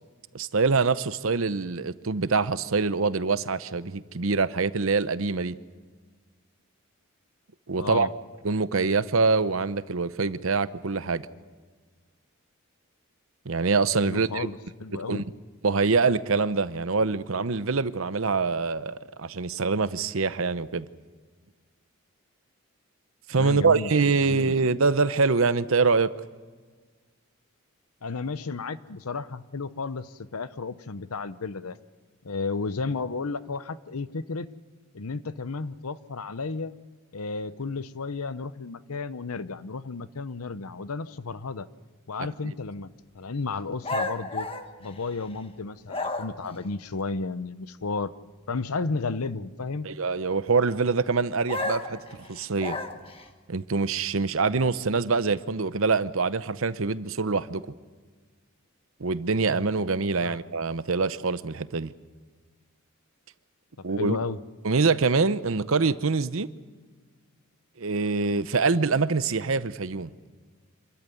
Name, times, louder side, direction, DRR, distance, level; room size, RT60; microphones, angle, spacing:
voice 1, 0.3-5.6 7.7-8.1 8.4-11.3 13.5-14.5 15.1-15.2 15.6-20.9 23.3-26.1 49.8-52.0 52.3-52.8 53.5-57.6 59.0-61.9 63.8-64.2 64.6-66.5 67.8-70.1, right 4 dB, 70° right, 0.8 m, -25 dB
voice 2, 7.8-8.1 14.0-15.2 23.4-23.9 24.2-24.5 28.0-31.8 32.2-34.5 34.9-36.7 37.1-41.7 42.1-42.9 43.1-44.5 44.8-48.2 48.5-49.9 60.2-60.4 63.8-64.4, left 4 dB, 90° left, 0.8 m, -33 dB
sound 1, 43.8-45.4 45.9-46.6 51.5-53.3, left 2 dB, 25° left, 1.3 m, -32 dB
26.5 x 13.5 x 9.3 m
head